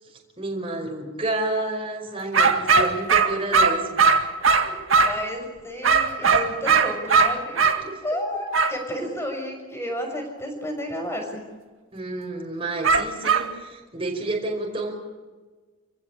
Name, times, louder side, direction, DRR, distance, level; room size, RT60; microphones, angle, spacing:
voice 1, 0.4-4.0 7.8-8.0 11.9-14.9, right 2 dB, 25° right, 1 dB, 5.3 m, -30 dB
sound 1, 2.3-5.2 5.8-7.8 8.5-8.8 12.8-13.5, right 5 dB, 75° right, 2.1 m, -19 dB
voice 2, 4.4-7.7 8.0-11.4, equal, 15° left, 2 dB, 6.4 m, -32 dB
29.5 x 16.0 x 8.7 m, 1.3 s
head